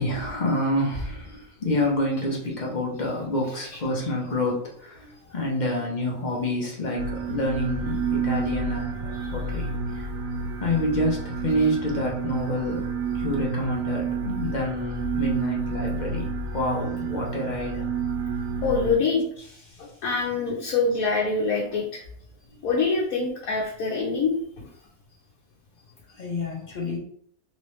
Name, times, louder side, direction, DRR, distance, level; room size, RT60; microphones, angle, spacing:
voice 1, 0.0-9.0 9.3-9.7 9.9-10.0 10.6-12.8 13.1-17.8 26.1-27.0, left 1 dB, 40° left, -1 dB, 0.8 m, -28 dB
sound 1, 6.9-19.0, right 5 dB, 85° right, 1.0 m, -29 dB
voice 2, 18.6-19.2 19.8-22.0 22.6-24.4, left 4 dB, 85° left, -3 dB, 1.1 m, -25 dB
3.1 x 3.0 x 3.1 m, 0.63 s
omnidirectional pair, 1.4 m